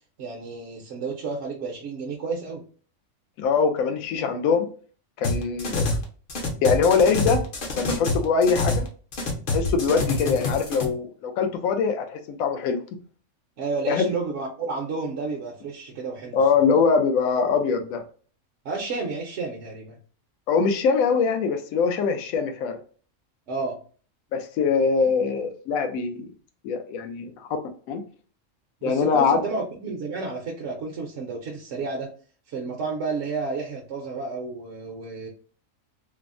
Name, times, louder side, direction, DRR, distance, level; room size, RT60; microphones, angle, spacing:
voice 1, 0.2-2.6 13.6-16.6 18.6-20.0 23.5-23.8 28.8-32.1 32.5-35.3, right 4 dB, 65° right, 0.9 m, -31 dB
voice 2, 3.4-4.7 5.2-5.8 6.6-7.4 7.7-8.9 9.5-12.8 13.9-14.1 16.3-18.0 20.5-22.8 24.3-26.3 26.6-27.3 27.9-28.0 28.8-29.4, left 5 dB, 80° left, 1.0 m, -22 dB
sound 1, 5.2-6.0 6.3-8.9 9.1-10.8, left 2 dB, 50° left, 0.7 m, -26 dB
3.3 x 2.0 x 2.4 m
omnidirectional pair, 1.5 m